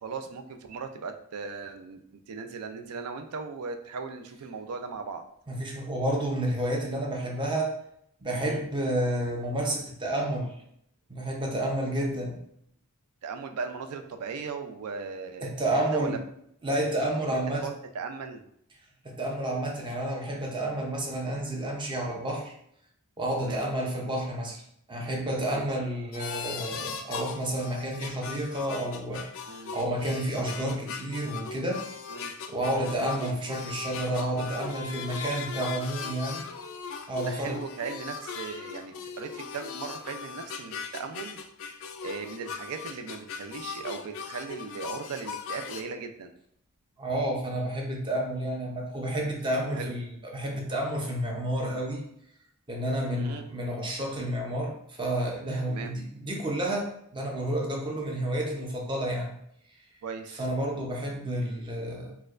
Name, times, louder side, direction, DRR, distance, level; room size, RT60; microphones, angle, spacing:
voice 1, 0.0-5.3 8.4-8.6 13.2-16.2 17.2-18.4 23.4-23.7 25.4-25.7 29.5-29.7 32.1-32.3 32.7-32.9 37.2-41.4 42.0-46.3 49.7-49.9 53.1-53.5 55.7-56.0 60.0-60.5, right 5 dB, 85° right, 6 dB, 0.4 m, -38 dB
voice 2, 5.5-7.8 8.2-10.5 11.1-12.4 15.4-16.2 16.6-17.7 19.0-22.5 23.2-24.6 24.9-31.9 32.5-36.5 37.1-37.6 47.0-52.0 52.7-59.4 60.4-62.1, right 1 dB, 20° right, 0 dB, 0.6 m, -30 dB
sound 1, 26.1-45.8, left 6 dB, 65° left, 0.3 m, -39 dB
4.3 x 2.2 x 2.4 m, 0.72 s
head